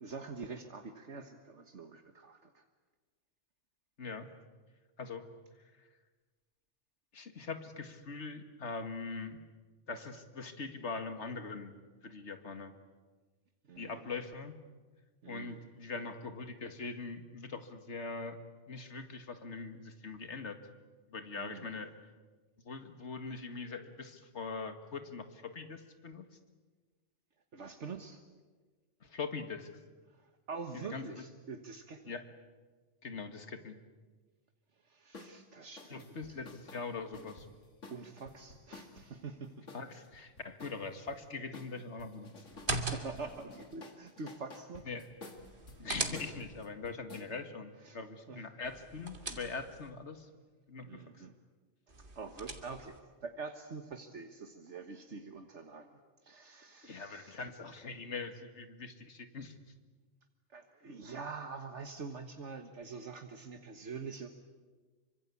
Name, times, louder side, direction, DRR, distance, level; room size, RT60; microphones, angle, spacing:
voice 1, 0.0-2.6 13.7-14.1 15.2-15.7 21.3-21.8 27.5-28.2 30.5-32.0 34.9-36.4 37.9-39.7 42.8-44.9 47.8-48.0 48.3-48.4 50.8-51.3 52.2-53.0 53.2-56.0 56.2-57.4 60.5-64.3, right 4 dB, 70° right, 6 dB, 1.7 m, -45 dB
voice 2, 7.1-9.4 9.9-11.7 12.0-12.7 13.8-14.5 15.3-18.4 18.7-20.6 21.1-21.9 22.7-26.3 29.0-29.7 30.7-31.2 32.1-32.3 33.0-33.7 35.9-37.5 39.7-42.3 44.9-45.1 45.8-50.3 50.7-51.0 56.8-59.5, left 4 dB, 70° left, 8 dB, 2.2 m, -42 dB
sound 1, 35.1-35.3 35.8-39.1 39.7-41.2 41.5-42.9 43.1-47.3, left 3 dB, 85° left, 2.6 m, -52 dB
sound 2, 42.5-43.4 45.4-46.7 48.6-49.9 51.9-53.0, right 3 dB, 45° right, 2.3 m, -40 dB
26.5 x 24.5 x 8.4 m, 1.4 s
omnidirectional pair, 1.2 m